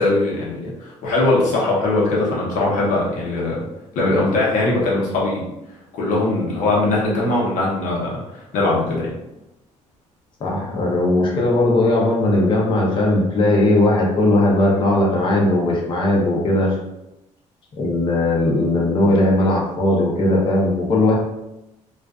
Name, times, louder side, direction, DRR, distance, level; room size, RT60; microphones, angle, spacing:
voice 1, 0.0-3.7 3.9-5.4 5.9-9.1, left 2 dB, 85° left, -4 dB, 0.8 m, -20 dB
voice 2, 10.4-16.8 17.8-21.2, left 1 dB, 40° left, -4 dB, 0.6 m, -18 dB
2.4 x 2.2 x 2.3 m, 0.90 s
cardioid pair, 115°, 13 cm